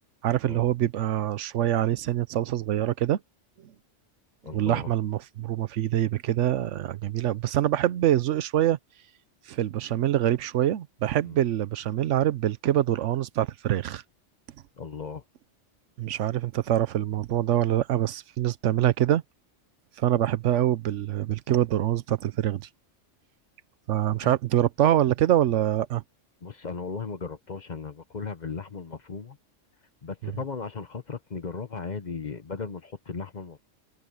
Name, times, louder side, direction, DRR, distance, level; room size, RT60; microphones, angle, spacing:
voice 1, 0.2-3.2 4.5-8.8 9.5-14.0 16.0-19.2 20.0-22.7 23.9-26.0 30.2-30.3, right 12 dB, 75° right, 1.0 m, -25 dB
voice 2, 4.4-4.9 11.3-11.4 14.8-15.2 24.2-24.3 26.4-29.4 30.0-33.6, left 5 dB, 40° left, 1.0 m, -36 dB
omnidirectional pair, 1.3 m